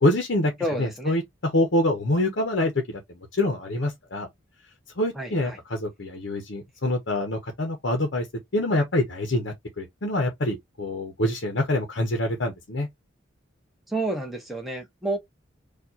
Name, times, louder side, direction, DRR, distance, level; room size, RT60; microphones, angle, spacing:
voice 1, 0.0-0.5 0.8-4.3 5.0-8.3 8.5-12.9, left 1 dB, 60° left, 0.9 m, -26 dB
voice 2, 0.6-1.2 5.1-5.6 13.9-15.2, right 1 dB, ahead, 1.1 m, -30 dB
4.4 x 2.4 x 2.8 m
head